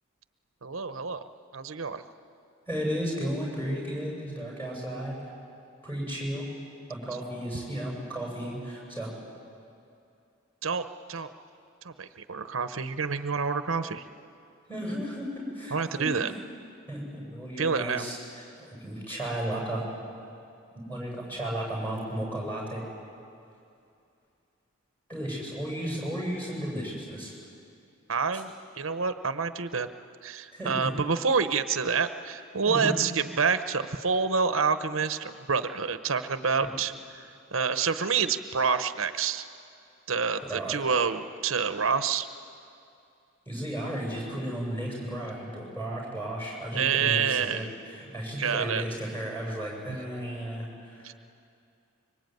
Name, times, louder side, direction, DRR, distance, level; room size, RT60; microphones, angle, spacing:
voice 1, 0.6-1.2 1.5-2.0 10.6-11.3 11.8-14.0 15.7-16.3 17.6-18.0 28.1-29.9 30.2-37.2 37.5-39.4 40.1-42.3 46.7-47.6 48.4-48.8 49.9-50.0 51.0-51.1, right 5 dB, 80° right, 10 dB, 0.9 m, -28 dB
voice 2, 2.7-5.2 5.8-6.5 6.9-9.1 14.7-16.3 16.9-18.4 18.7-19.8 20.7-22.8 25.1-27.3 28.3-28.4 30.5-30.9 32.7-32.9 36.6-36.7 40.4-41.0 43.5-51.0, equal, 10° left, -3 dB, 7.6 m, -34 dB
25.0 x 23.5 x 9.4 m, 2.6 s
head